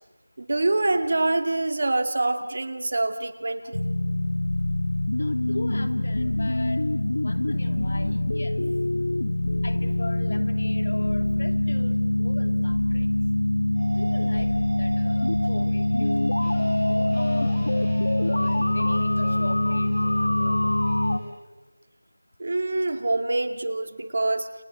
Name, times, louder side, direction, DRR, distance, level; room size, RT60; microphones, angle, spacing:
voice 1, 0.4-3.8 22.4-24.5, right 2 dB, 45° right, 8 dB, 2.3 m, -25 dB
sound 1, 3.7-21.2, left 1 dB, 80° left, 1.6 m, -24 dB
voice 2, 5.1-6.9 7.2-8.6 9.6-13.1 13.9-17.7 18.2-20.7, left 2 dB, 55° left, 8 dB, 2.7 m, -39 dB
sound 2, 13.7-21.3, right 1 dB, ahead, 5.3 m, -39 dB
29.5 x 25.0 x 7.8 m, 1.1 s
figure-of-eight pair, 175°, 0 cm